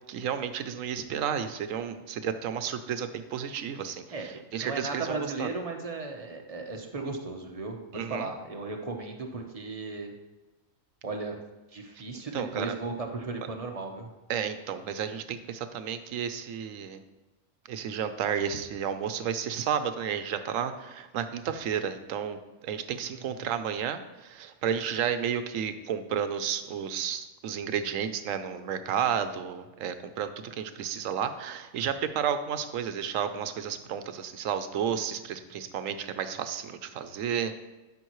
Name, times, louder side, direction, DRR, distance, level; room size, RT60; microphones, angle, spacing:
voice 1, 0.1-5.5 7.9-8.3 12.3-12.7 14.3-17.0 17.7-22.4 22.6-37.5, right 8 dB, 80° right, 10 dB, 1.0 m, -32 dB
voice 2, 4.1-7.8 8.1-10.1 11.0-11.4 11.7-14.1 23.1-23.2, right 3 dB, 30° right, 3 dB, 0.9 m, -36 dB
12.5 x 5.7 x 3.1 m, 1.1 s
omnidirectional pair, 1.4 m